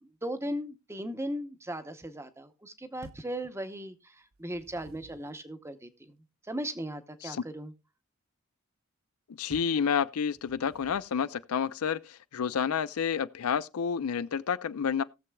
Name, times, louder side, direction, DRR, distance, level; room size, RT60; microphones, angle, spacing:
voice 1, 0.0-6.1 6.5-7.7, right 1 dB, 10° right, 0.7 m, -37 dB
sound 1, 3.0-3.4 4.3-5.4 9.5-9.9 10.5-11.2, right 2 dB, 45° right, 0.5 m, -52 dB
voice 2, 9.4-15.0, left 7 dB, 85° left, 0.5 m, -30 dB
19.0 x 7.0 x 2.2 m
head